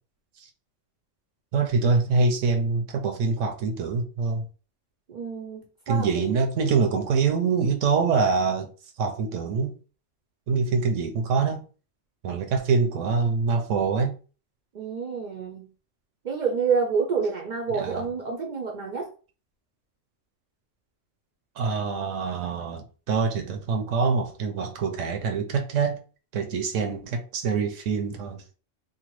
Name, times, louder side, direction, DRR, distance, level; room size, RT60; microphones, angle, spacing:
voice 1, 1.5-4.5 5.9-8.7 9.0-9.8 10.5-11.6 12.2-14.1 17.7-18.1 21.6-26.0 26.3-28.4, right 4 dB, 85° right, 0.9 m, -25 dB
voice 2, 5.1-6.3 14.7-15.7 16.2-19.1, right 5 dB, 60° right, 0.4 m, -28 dB
2.8 x 2.2 x 3.0 m
omnidirectional pair, 1.3 m